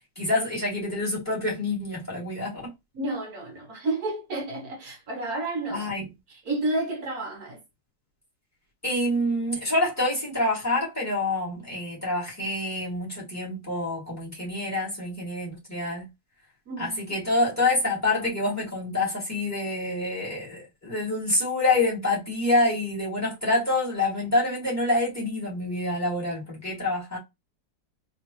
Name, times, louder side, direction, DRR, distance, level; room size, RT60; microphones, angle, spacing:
voice 1, 0.2-2.7 5.7-6.0 8.8-16.1 16.8-27.2, left 2 dB, 10° left, 2.1 m, -27 dB
voice 2, 2.9-5.9 6.3-7.6 16.7-17.0, right 2 dB, 55° right, 1.4 m, -31 dB
4.2 x 3.1 x 3.0 m
omnidirectional pair, 2.0 m